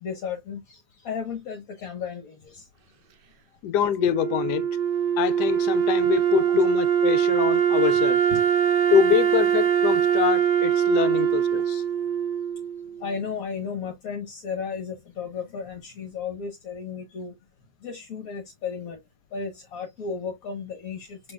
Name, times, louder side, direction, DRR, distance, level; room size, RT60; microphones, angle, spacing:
voice 1, 0.0-2.7 6.5-6.6 8.3-8.4 11.1-11.2 13.0-17.3 17.8-19.0 19.3-21.3, left 6 dB, 60° left, 1.5 m, -34 dB
voice 2, 3.6-4.7 5.2-8.2 8.9-11.8, left 9 dB, 75° left, 1.1 m, -24 dB
Wind instrument woodwind instrument, 4.0-13.1, right 8 dB, 85° right, 1.5 m, -22 dB
6.2 x 3.4 x 2.3 m
omnidirectional pair, 1.8 m